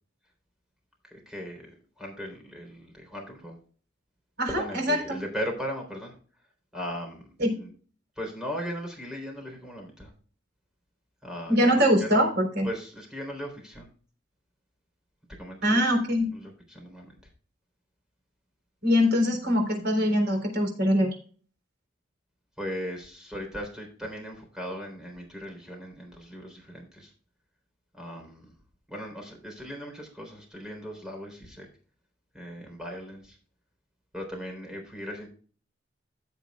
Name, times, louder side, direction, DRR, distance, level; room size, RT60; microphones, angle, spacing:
voice 1, 1.0-1.7 2.0-3.6 4.5-6.2 6.7-7.7 8.2-10.1 11.2-12.3 12.6-13.9 15.4-17.2 22.6-27.1 27.9-28.5 28.9-31.7 32.3-33.4 34.1-35.3, equal, 5° right, 1 dB, 3.7 m, -38 dB
voice 2, 4.4-5.2 7.4-7.5 11.5-12.7 15.6-16.3 18.8-21.2, equal, 60° right, 3 dB, 3.9 m, -23 dB
15.5 x 7.3 x 2.4 m, 0.42 s
head